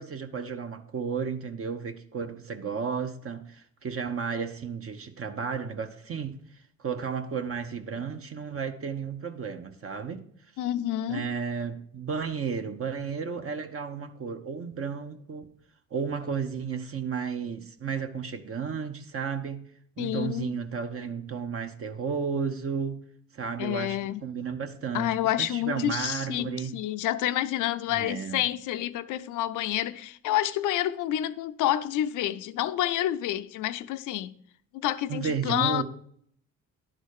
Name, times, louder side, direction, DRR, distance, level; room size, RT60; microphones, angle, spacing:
voice 1, 0.0-6.4 6.8-10.2 11.1-15.5 15.9-19.6 20.0-23.0 23.3-26.7 27.9-28.4 35.1-35.8, right 6 dB, 50° right, 0.9 m, -33 dB
voice 2, 10.6-11.3 20.0-20.5 23.6-24.2 24.9-34.3 34.7-35.8, left 13 dB, 85° left, 0.6 m, -29 dB
11.0 x 4.0 x 6.5 m
cardioid pair, 90°, 30 cm